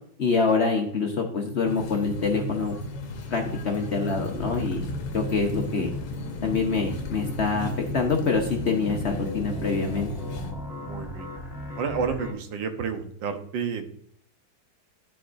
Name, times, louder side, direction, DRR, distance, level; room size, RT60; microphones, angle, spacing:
voice 1, 0.2-2.7 3.3-4.8 5.1-5.9 6.4-10.1, left 4 dB, 45° left, 2 dB, 0.9 m, -25 dB
sound 1, 1.6-10.5, left 2 dB, 75° left, 1.6 m, -35 dB
sound 2, 4.3-12.3, left 1 dB, 10° left, 1.4 m, -37 dB
voice 2, 10.8-11.3 11.8-13.9, right 6 dB, 85° right, 7 dB, 1.6 m, -30 dB
12.5 x 4.6 x 2.5 m, 0.65 s
omnidirectional pair, 2.0 m